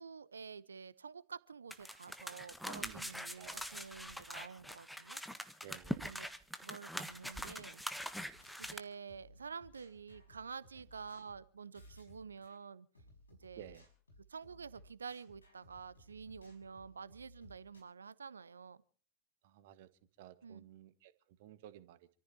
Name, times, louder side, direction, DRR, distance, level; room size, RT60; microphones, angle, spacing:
voice 1, 0.0-5.2 6.0-6.3 6.6-7.8 8.6-12.9 13.4-13.8 14.3-18.8 20.4-20.6, right 5 dB, 75° right, 0.8 m, -49 dB
sound 1, 1.7-8.8, equal, ahead, 1.4 m, -43 dB
voice 2, 2.7-3.1 3.4-3.7 5.6-6.1 13.5-13.9 19.4-19.9 20.2-22.1, right 12 dB, 50° right, 1.6 m, -55 dB
sound 2, 8.3-12.6 12.9-17.8, left 1 dB, 75° left, 5.5 m, -61 dB
28.0 x 14.5 x 2.9 m
figure-of-eight pair, 90°, 0 cm